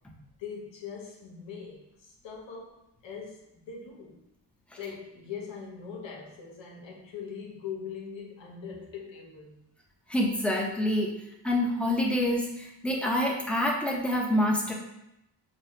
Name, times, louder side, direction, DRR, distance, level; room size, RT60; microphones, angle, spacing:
voice 1, 0.4-2.8 3.0-4.2 4.8-9.6, left 6 dB, 90° left, -2 dB, 0.9 m, -41 dB
voice 2, 10.1-11.2 11.4-14.7, left 1 dB, 5° left, -2 dB, 0.9 m, -27 dB
6.1 x 2.3 x 3.0 m, 0.85 s
cardioid pair, 70°, 44 cm